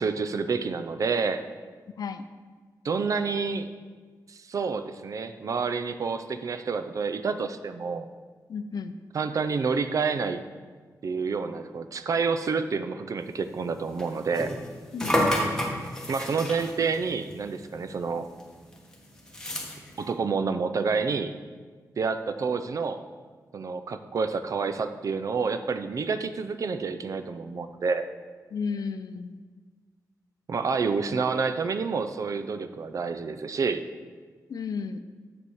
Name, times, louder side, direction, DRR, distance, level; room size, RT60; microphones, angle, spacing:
voice 1, 0.0-1.5 2.8-3.7 4.3-8.1 9.1-10.4 11.0-14.5 16.1-18.3 20.0-21.4 22.0-23.0 23.5-28.1 30.5-33.8, right 5 dB, 55° right, 10 dB, 0.5 m, -28 dB
voice 2, 8.5-9.0 14.9-15.8 28.5-29.4 34.5-35.0, left 5 dB, 65° left, 10 dB, 0.5 m, -33 dB
sound 1, 13.5-18.1 18.4-20.1, equal, 10° left, 1.2 m, -31 dB
7.2 x 6.8 x 4.7 m, 1.5 s
wide cardioid pair, 125°, 7 cm